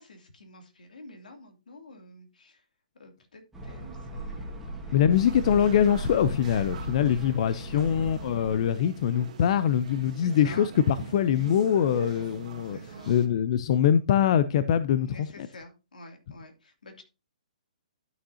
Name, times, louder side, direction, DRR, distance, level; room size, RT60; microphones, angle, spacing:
voice 1, 0.0-2.7 3.0-5.3 6.9-7.9 10.1-10.7 12.6-13.2 15.1-17.0, left 2 dB, 90° left, 2.8 m, -50 dB
sound 1, 3.5-8.7, right 1 dB, 5° right, 1.8 m, -38 dB
voice 2, 4.9-12.8 13.1-15.3, left 9 dB, 50° left, 0.6 m, -23 dB
sound 2, 5.1-13.3, right 6 dB, 60° right, 1.8 m, -43 dB
12.5 x 6.2 x 2.8 m
hypercardioid pair, 150°, 4 cm